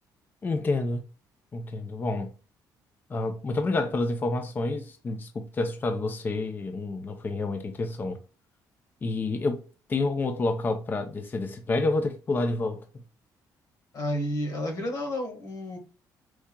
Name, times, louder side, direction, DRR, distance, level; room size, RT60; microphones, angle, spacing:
voice 1, 0.4-1.0 1.5-2.3 3.1-8.2 9.0-9.6 9.9-12.8, left 2 dB, 25° left, 0.5 m, -28 dB
voice 2, 13.9-15.8, equal, 60° left, 1.6 m, -31 dB
4.6 x 2.7 x 2.2 m
cardioid pair, 125°, 7 cm